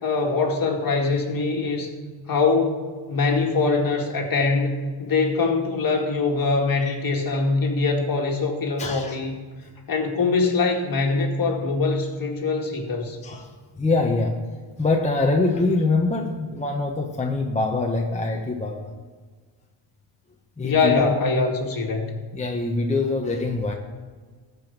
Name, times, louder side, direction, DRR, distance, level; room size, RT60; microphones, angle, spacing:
voice 1, 0.0-1.9 2.3-2.8 3.1-9.3 9.9-13.2 20.6-22.2, left 4 dB, 45° left, 1 dB, 2.2 m, -23 dB
voice 2, 8.8-9.2 13.2-14.4 14.8-18.9 20.6-21.1 22.3-23.7, left 3 dB, 15° left, 1 dB, 1.1 m, -24 dB
14.0 x 5.4 x 7.3 m, 1.5 s
cardioid pair, 90°, 49 cm